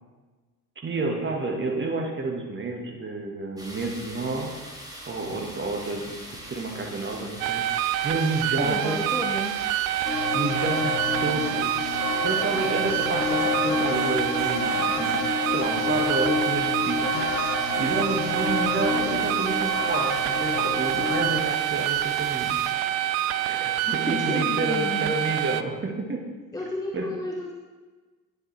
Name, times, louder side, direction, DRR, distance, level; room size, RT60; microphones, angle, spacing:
voice 1, 0.8-4.6 5.1-7.6 8.0-9.0 10.3-11.7 12.2-15.2 15.5-17.3 17.8-22.6 23.5-26.2 26.9-27.1, right 3 dB, 25° right, 2 dB, 1.5 m, -30 dB
sound 1, 3.6-22.7, equal, 10° right, 1.7 m, -42 dB
sound 2, 7.4-25.6, right 12 dB, 65° right, 0.5 m, -27 dB
voice 2, 8.6-9.6 12.1-12.6 23.8-25.2 26.5-27.5, left 2 dB, 10° left, 1 dB, 0.6 m, -32 dB
sound 3, 10.1-21.4, left 5 dB, 90° left, 0.7 m, -29 dB
9.6 x 6.7 x 3.3 m, 1.3 s
figure-of-eight pair, 60°, 48 cm